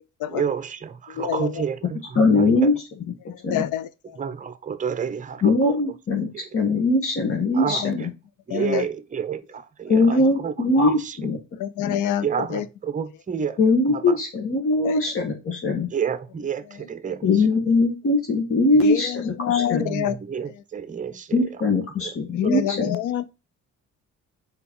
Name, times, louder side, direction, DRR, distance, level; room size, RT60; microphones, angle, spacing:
voice 1, 0.3-2.5 4.2-5.5 7.5-8.1 8.5-10.5 10.9-11.2 12.2-13.6 13.9-14.2 15.9-17.3 19.7-21.5 22.4-22.9, right 7 dB, 25° right, 0.7 m, -30 dB
voice 2, 1.1-1.6 3.5-4.2 7.7-8.0 8.5-8.9 11.6-12.7 14.8-15.0 18.8-20.2 22.4-23.3, left 11 dB, 85° left, 0.6 m, -26 dB
voice 3, 2.2-2.7 3.4-3.7 5.4-8.1 9.9-11.4 11.8-12.0 13.6-15.9 17.2-19.8 21.3-23.0, left 2 dB, 45° left, 1.7 m, -21 dB
4.8 x 4.1 x 5.4 m
cardioid pair, 90°, 30 cm